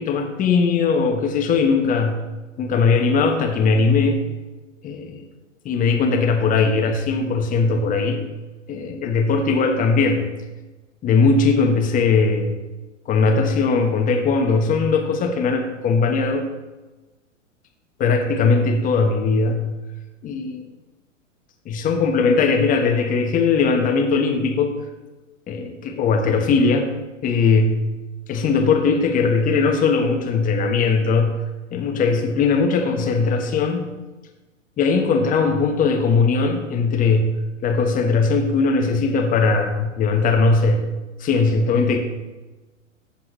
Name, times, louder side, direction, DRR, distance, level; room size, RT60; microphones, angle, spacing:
voice 1, 0.0-2.2 2.6-4.2 4.8-5.2 5.6-8.2 8.7-10.3 11.0-12.5 13.1-16.5 18.0-19.7 20.2-20.6 21.6-24.8 25.5-26.9 27.2-27.8 28.3-31.3 31.7-33.8 34.8-40.8 41.2-42.0, left 4 dB, 20° left, 4 dB, 1.3 m, -19 dB
15.0 x 7.2 x 3.1 m, 1.2 s
figure-of-eight pair, 105°, 39 cm